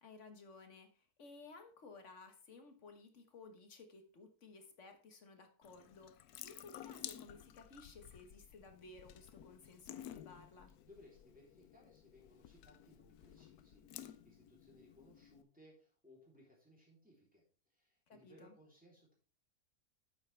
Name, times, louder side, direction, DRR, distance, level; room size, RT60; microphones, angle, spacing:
voice 1, 0.0-10.7 18.1-18.5, left 3 dB, 55° left, 6 dB, 1.5 m, -57 dB
Water tap faucet / Sink (filling or washing) / Drip, 5.6-15.4, left 11 dB, 85° left, 1.1 m, -54 dB
voice 2, 10.8-17.4 17.7-19.1, left 1 dB, 5° right, -3 dB, 3.2 m, -64 dB
9.1 x 7.6 x 3.3 m, 0.37 s
omnidirectional pair, 1.6 m